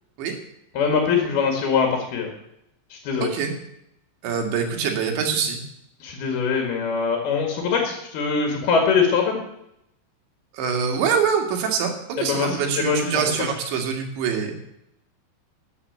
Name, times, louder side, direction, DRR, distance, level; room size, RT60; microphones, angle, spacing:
voice 1, 0.8-2.3 2.9-3.3 6.0-9.4 12.2-13.2, left 5 dB, 60° left, 2 dB, 3.7 m, -22 dB
voice 2, 3.2-3.5 4.2-5.6 10.5-11.9 12.2-14.6, right 6 dB, 75° right, 4 dB, 4.2 m, -24 dB
13.0 x 8.5 x 8.2 m, 0.79 s
omnidirectional pair, 5.3 m